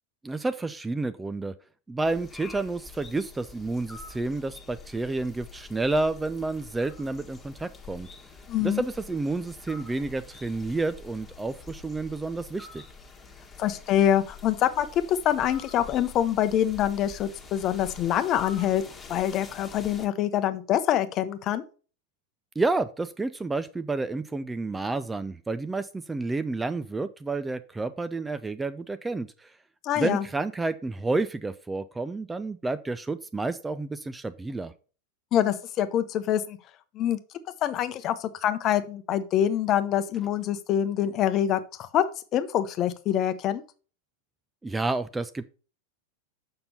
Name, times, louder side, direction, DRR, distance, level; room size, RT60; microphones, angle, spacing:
voice 1, 0.2-1.5 1.9-8.1 8.6-12.8 22.6-29.5 30.0-34.7 44.6-45.4, right 3 dB, 10° right, 13 dB, 0.4 m, -30 dB
sound 1, 2.0-20.1, left 4 dB, 15° left, 1.5 m, -46 dB
voice 2, 8.5-8.8 13.6-18.8 19.1-21.6 29.8-30.2 35.3-36.6 36.9-37.2 37.6-42.0 42.3-43.6, left 10 dB, 35° left, 12 dB, 0.8 m, -25 dB
6.9 x 5.7 x 5.3 m, 0.38 s
figure-of-eight pair, 90°, 0 cm